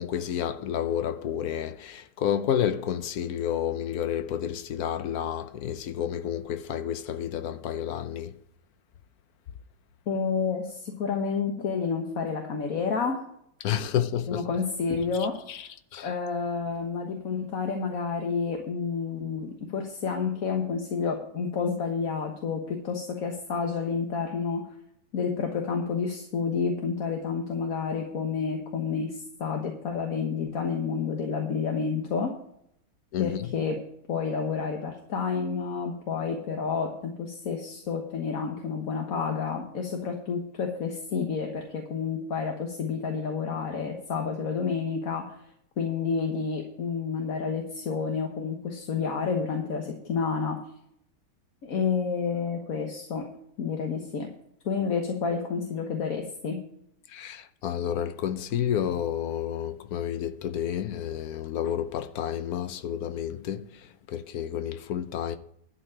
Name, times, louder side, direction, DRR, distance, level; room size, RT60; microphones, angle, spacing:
voice 1, 0.0-8.3 13.6-14.5 15.5-16.1 33.1-33.5 57.1-65.4, left 10 dB, 70° left, 0.9 m, -30 dB
voice 2, 10.1-13.2 14.3-15.4 16.0-24.7 25.1-32.3 33.2-33.8 34.1-45.3 45.8-50.6 51.6-53.3 53.6-54.3 54.6-56.6, left 5 dB, 45° left, 1.5 m, -30 dB
12.0 x 5.1 x 8.7 m
omnidirectional pair, 2.3 m